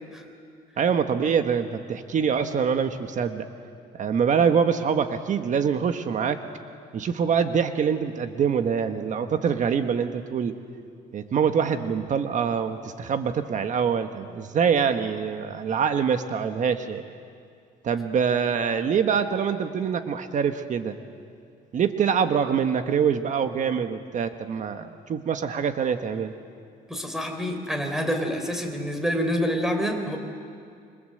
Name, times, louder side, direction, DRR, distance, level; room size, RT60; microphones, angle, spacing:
voice 1, 0.8-3.5 3.9-6.4 6.9-10.6 11.1-17.0 17.8-21.0 21.7-26.3, right 7 dB, 50° right, 8 dB, 1.4 m, -24 dB
voice 2, 26.9-30.2, equal, ahead, 4 dB, 4.0 m, -27 dB
27.5 x 25.0 x 8.0 m, 2.3 s
cardioid pair, 110°, 17 cm